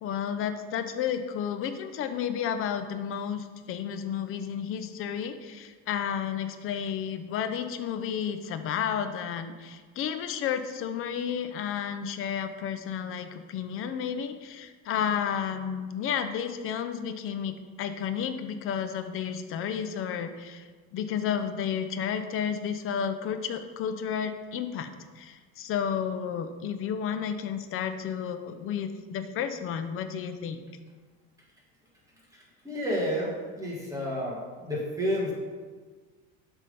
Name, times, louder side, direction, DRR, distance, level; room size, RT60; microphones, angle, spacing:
voice 1, 0.0-24.9 25.2-30.6, left 8 dB, 45° left, 9 dB, 0.6 m, -32 dB
voice 2, 32.3-33.3 33.6-35.3, equal, 10° right, -4 dB, 1.7 m, -30 dB
7.4 x 3.6 x 5.3 m, 1.4 s
cardioid pair, 125°, 30 cm